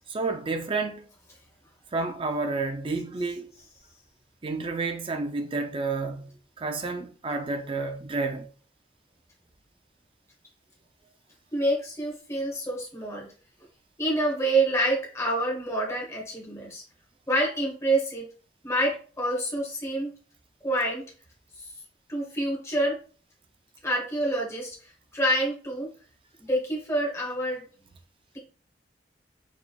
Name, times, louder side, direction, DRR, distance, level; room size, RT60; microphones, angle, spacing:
voice 1, 0.1-1.0 1.9-3.6 4.4-6.3 6.6-8.5, right 3 dB, 30° right, 0.5 m, -30 dB
voice 2, 11.5-13.3 14.0-16.8 17.3-18.3 18.6-20.1 20.6-21.1 22.1-23.0 23.8-24.8 25.1-25.9 26.4-27.6, right 1 dB, 15° left, 1.2 m, -27 dB
4.2 x 3.4 x 2.3 m
head